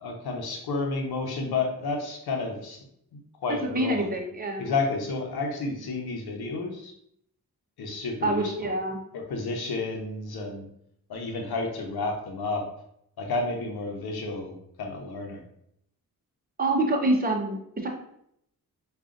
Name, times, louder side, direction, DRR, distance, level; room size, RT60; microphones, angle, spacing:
voice 1, 0.0-2.8 3.1-4.1 4.6-6.9 7.8-8.7 9.1-10.6 11.1-12.7 13.2-15.4, left 3 dB, 75° left, 2 dB, 0.8 m, -31 dB
voice 2, 3.6-4.7 8.2-9.0 16.6-17.9, right 2 dB, 25° right, 1 dB, 0.8 m, -26 dB
4.8 x 2.5 x 2.5 m, 0.73 s
cardioid pair, 65°, 37 cm